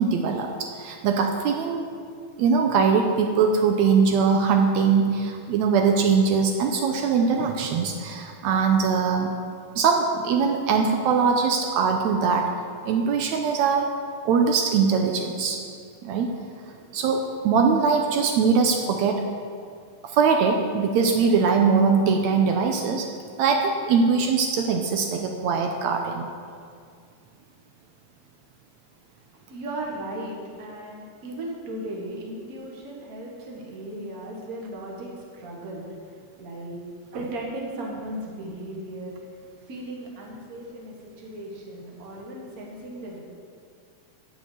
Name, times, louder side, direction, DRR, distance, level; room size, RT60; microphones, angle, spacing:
voice 1, 0.0-1.8 2.4-9.3 9.8-12.5 12.9-13.9 14.3-15.6 16.0-16.3 16.9-19.2 20.0-23.1 23.4-26.3, right 5 dB, 80° right, 3 dB, 2.0 m, -22 dB
voice 2, 29.5-35.8 36.4-36.8 37.1-39.1 39.7-43.2, right 1 dB, 35° right, -2 dB, 1.8 m, -36 dB
10.5 x 5.4 x 8.2 m, 2.2 s
omnidirectional pair, 3.3 m